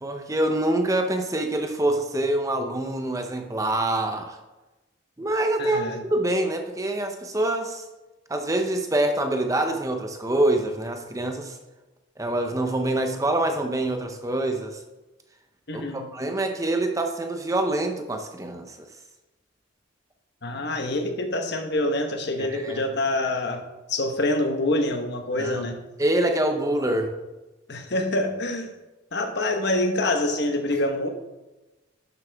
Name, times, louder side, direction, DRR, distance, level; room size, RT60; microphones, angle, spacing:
voice 1, 0.0-4.4 5.2-5.8 6.1-7.8 8.3-11.6 12.2-14.8 15.7-18.8 22.4-22.8 25.4-25.7 26.0-27.1, right 1 dB, 15° right, 5 dB, 0.7 m, -25 dB
voice 2, 5.6-6.0 15.7-16.1 20.4-23.6 23.9-25.8 27.7-28.7 29.1-31.1, left 1 dB, 55° left, 5 dB, 1.1 m, -26 dB
12.0 x 7.4 x 3.5 m, 1.1 s
head